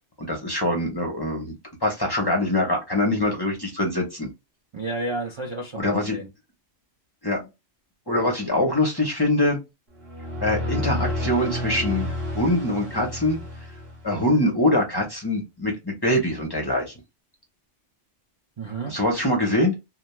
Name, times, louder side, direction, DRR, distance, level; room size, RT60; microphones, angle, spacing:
voice 1, 0.2-1.5 1.8-4.3 5.8-6.2 7.2-7.4 8.1-9.6 10.4-13.4 14.0-16.9 18.9-19.7, left 1 dB, 25° left, 0.5 m, -23 dB
voice 2, 4.7-6.3 18.6-19.0, right 2 dB, 50° right, 0.3 m, -31 dB
sound 1, 9.9-14.3, left 1 dB, 30° right, 0.9 m, -30 dB
2.2 x 2.2 x 3.0 m
omnidirectional pair, 1.3 m